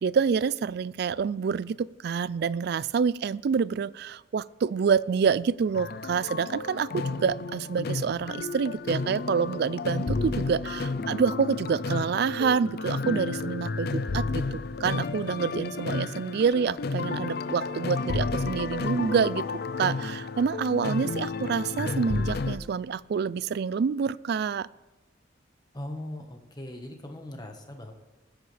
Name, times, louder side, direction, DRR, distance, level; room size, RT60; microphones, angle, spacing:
voice 1, 0.0-19.4 19.8-24.7, right 6 dB, 55° right, 20 dB, 0.3 m, -27 dB
sound 1, 5.7-22.6, left 3 dB, 50° left, 0.5 m, -31 dB
voice 2, 25.7-27.9, left 1 dB, 20° left, 4 dB, 1.3 m, -39 dB
19.5 x 10.0 x 3.4 m, 1.1 s
head